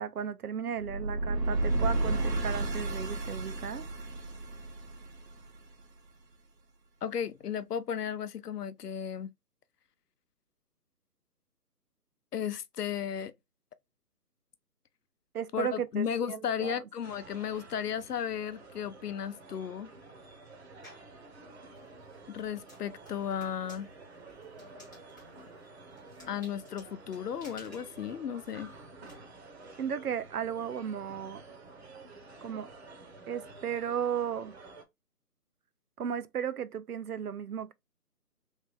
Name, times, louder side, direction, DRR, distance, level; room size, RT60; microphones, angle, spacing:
voice 1, 0.0-3.9 15.3-16.8 29.8-31.4 32.4-32.7 33.3-34.5 36.0-37.7, right 8 dB, 65° right, 0.6 m, -35 dB
sound 1, 0.8-5.8, right 2 dB, 90° right, 1.2 m, -32 dB
voice 2, 7.0-9.3 12.3-13.3 15.5-19.9 22.3-23.9 26.3-28.7, left 8 dB, 70° left, 0.7 m, -34 dB
sound 2, 17.0-34.8, right 3 dB, 40° right, 0.9 m, -51 dB
sound 3, 20.8-21.2 21.7-29.1, left 1 dB, 10° left, 0.7 m, -57 dB
3.2 x 3.2 x 3.2 m
figure-of-eight pair, 160°, 48 cm